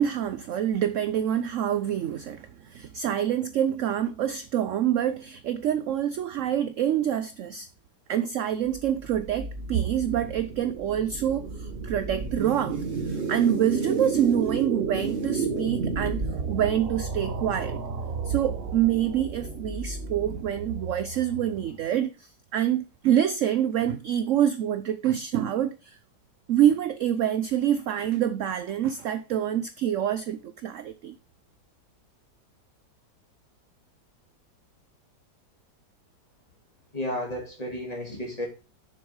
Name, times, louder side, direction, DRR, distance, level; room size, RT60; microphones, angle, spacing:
voice 1, 0.0-7.7 8.1-16.2 16.5-17.8 18.2-26.0 26.5-31.2, right 10 dB, 70° right, 0.7 m, -26 dB
sound 1, 8.6-21.8, right 4 dB, 40° right, 1.0 m, -32 dB
voice 2, 36.9-38.5, left 1 dB, 20° left, 3.1 m, -32 dB
7.2 x 6.7 x 4.7 m
omnidirectional pair, 1.9 m